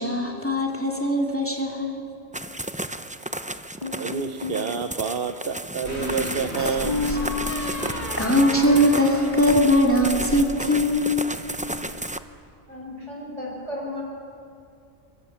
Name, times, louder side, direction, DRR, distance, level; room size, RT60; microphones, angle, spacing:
voice 1, 0.0-2.0 8.2-11.1, equal, 10° left, 1 dB, 2.5 m, -21 dB
sound 1, 2.3-12.2, right 1 dB, 10° right, 0.5 m, -33 dB
sound 2, 3.8-4.6 6.5-10.2, left 2 dB, 40° left, 4.1 m, -31 dB
voice 2, 4.0-7.0 7.8-7.9, right 6 dB, 55° right, 7 dB, 1.0 m, -29 dB
sound 3, 5.8-12.2, left 2 dB, 70° left, 8.0 m, -37 dB
voice 3, 12.7-14.0, left 1 dB, 75° right, -2 dB, 6.6 m, -34 dB
24.0 x 24.0 x 7.2 m, 2.5 s
omnidirectional pair, 1.2 m